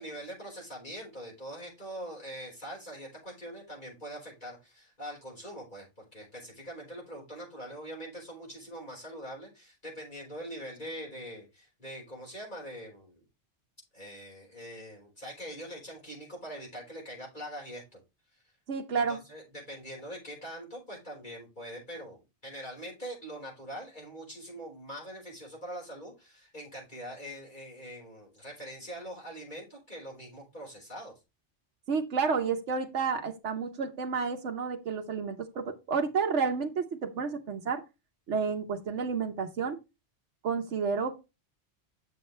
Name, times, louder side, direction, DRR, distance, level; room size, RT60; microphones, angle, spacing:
voice 1, 0.0-13.2 13.9-18.0 18.9-31.1, equal, 45° left, -4 dB, 5.0 m, -43 dB
voice 2, 18.7-19.2 31.9-37.8 38.3-39.8 40.4-41.3, right 5 dB, 90° right, 4 dB, 1.3 m, -30 dB
8.1 x 6.8 x 3.2 m, 0.26 s
omnidirectional pair, 1.2 m